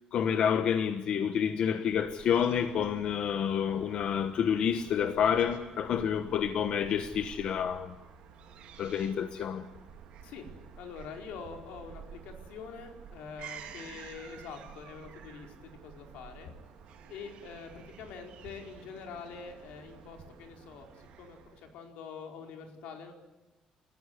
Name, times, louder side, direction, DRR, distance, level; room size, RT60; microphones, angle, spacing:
voice 1, 0.1-7.9 8.8-9.6, left 8 dB, 50° left, 9 dB, 1.2 m, -29 dB
Fowl / Gull seagull, 1.9-21.8, right 7 dB, 60° right, 3.6 m, -51 dB
voice 2, 10.8-16.5 17.1-23.1, left 5 dB, 85° left, 3 dB, 4.7 m, -45 dB
29.0 x 15.0 x 9.8 m, 1.1 s
cardioid pair, 180°, 2 cm